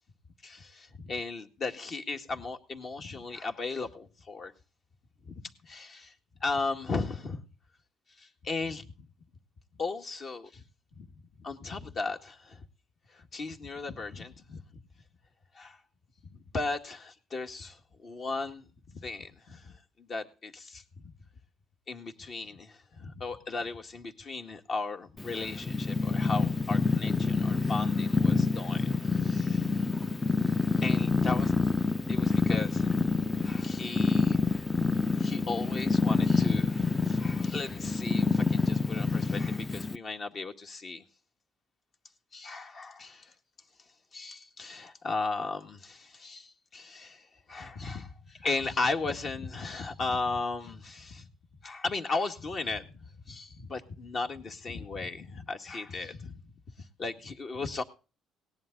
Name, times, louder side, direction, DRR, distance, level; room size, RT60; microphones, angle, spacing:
voice 1, 0.4-4.5 5.3-6.1 6.4-7.4 8.2-8.8 9.8-10.6 10.9-11.1 11.4-12.6 13.1-14.6 15.6-15.8 16.5-18.6 18.9-20.8 21.9-29.7 30.8-31.5 32.1-33.0 33.4-34.6 35.2-41.0 42.3-43.3 44.1-51.3 51.6-52.9 53.3-56.4 57.0-57.8, left 3 dB, 40° left, 5 dB, 1.9 m, -36 dB
Purr, 25.2-40.0, left 4 dB, 15° left, 0.6 m, -27 dB
18.0 x 11.0 x 4.0 m, 0.34 s
cardioid pair, 130°, 0 cm